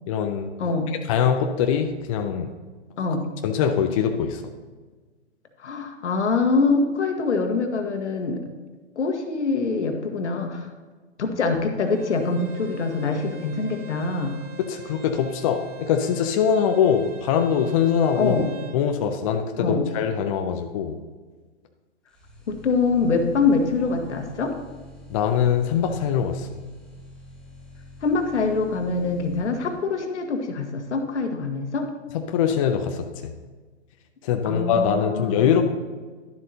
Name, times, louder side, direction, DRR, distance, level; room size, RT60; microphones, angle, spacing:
voice 1, 0.1-0.5 0.9-2.5 3.4-4.5 14.6-18.4 18.7-21.0 25.1-26.5 32.1-33.3 34.2-35.7, left 7 dB, 30° left, 5 dB, 0.5 m, -23 dB
voice 2, 0.6-0.9 3.0-3.3 5.6-8.4 8.9-10.7 11.2-14.3 18.2-18.5 19.6-19.8 22.5-24.5 28.0-31.9 34.4-35.5, left 4 dB, 70° left, 5 dB, 1.5 m, -24 dB
Bowed string instrument, 11.8-18.8, right 9 dB, 25° right, 0.8 m, -44 dB
sound 1, 22.1-30.1, left 1 dB, ahead, 1.2 m, -46 dB
11.5 x 7.6 x 2.8 m, 1.4 s
hypercardioid pair, 130°, 36 cm